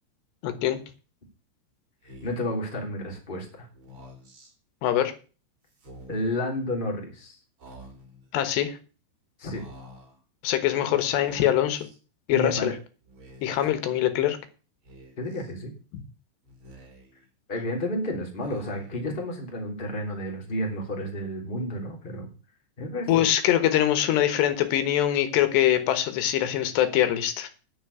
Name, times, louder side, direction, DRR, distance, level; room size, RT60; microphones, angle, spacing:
voice 1, 0.4-0.8 4.8-5.1 8.3-8.8 10.4-11.9 12.3-12.7 13.4-14.4 15.9-16.0 23.1-27.5, left 12 dB, 80° left, 10 dB, 3.4 m, -23 dB
Speech, 2.0-2.6 3.7-4.5 5.7-6.4 7.6-8.3 9.5-10.2 11.2-12.0 13.0-13.7 14.8-15.5 16.4-17.3 18.4-19.1, equal, 35° right, 3.0 m, -48 dB
voice 2, 2.2-3.7 6.1-7.4 9.4-9.6 12.3-12.7 13.6-13.7 15.2-15.7 17.5-22.3 22.8-23.2, left 1 dB, 15° left, 1 dB, 2.7 m, -31 dB
10.5 x 7.0 x 8.3 m, 0.36 s
omnidirectional pair, 4.8 m